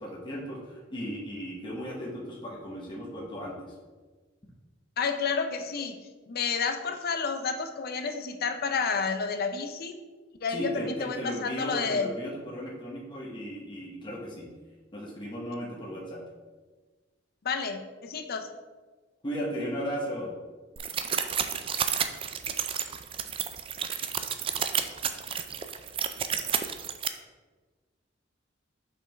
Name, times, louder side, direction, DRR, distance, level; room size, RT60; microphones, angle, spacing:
voice 1, 0.0-3.7 10.5-14.5 14.9-16.2 19.2-20.3, equal, 25° left, -5 dB, 1.1 m, -36 dB
voice 2, 5.0-10.0 10.4-12.1 17.4-18.5, left 5 dB, 55° left, 7 dB, 0.5 m, -30 dB
sound 1, 20.8-27.1, right 8 dB, 30° right, 0.3 m, -31 dB
5.5 x 5.2 x 3.4 m, 1.3 s
head